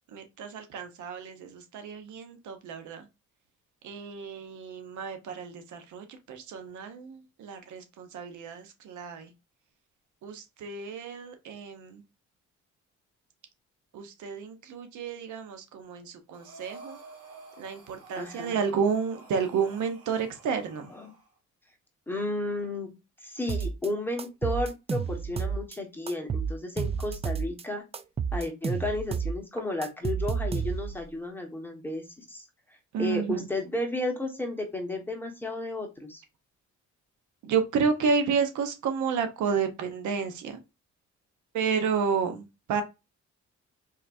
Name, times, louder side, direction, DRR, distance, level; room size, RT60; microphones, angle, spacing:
voice 1, 0.1-3.1 3.8-9.3 10.2-12.0 13.9-17.0 17.6-20.9 32.9-33.5 37.4-40.6 41.5-42.8, right 6 dB, 75° right, 7 dB, 0.9 m, -31 dB
Breathing, 16.3-21.3, right 3 dB, 50° right, 1.5 m, -50 dB
voice 2, 18.2-18.6 20.9-21.1 22.1-22.9 23.2-27.8 28.3-32.4 33.0-36.2, left 1 dB, 5° left, 2 dB, 1.2 m, -33 dB
sound 1, 23.5-23.9 24.2-25.8 26.1-27.6 27.9-31.0, right 6 dB, 20° right, 0.3 m, -31 dB
4.1 x 3.1 x 2.5 m, 0.25 s
cardioid pair, 90°, 30 cm